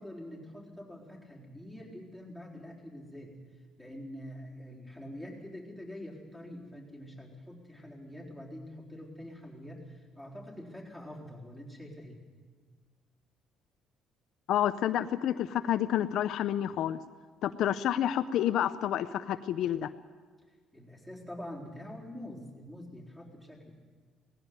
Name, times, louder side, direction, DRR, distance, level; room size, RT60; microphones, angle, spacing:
voice 1, 0.0-3.4 3.8-12.2 20.7-23.8, left 1 dB, 5° right, -3 dB, 4.0 m, -45 dB
voice 2, 14.5-17.0 17.4-19.9, left 11 dB, 65° left, 10 dB, 0.6 m, -29 dB
18.0 x 16.0 x 9.4 m, 1.5 s
cardioid pair, 135°, 0 cm